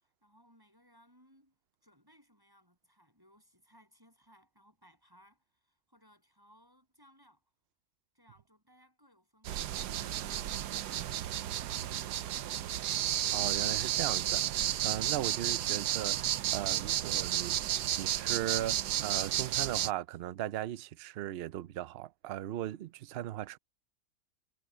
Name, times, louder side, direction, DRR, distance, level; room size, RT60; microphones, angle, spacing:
voice 1, 0.0-1.5 1.8-7.4 8.1-9.8, equal, 15° right, 8.1 m, -64 dB
sound 1, 9.4-19.9, right 12 dB, 85° right, 1.3 m, -32 dB
voice 2, 13.3-17.6 18.0-23.6, right 13 dB, 70° right, 0.5 m, -37 dB
omnidirectional pair, 1.7 m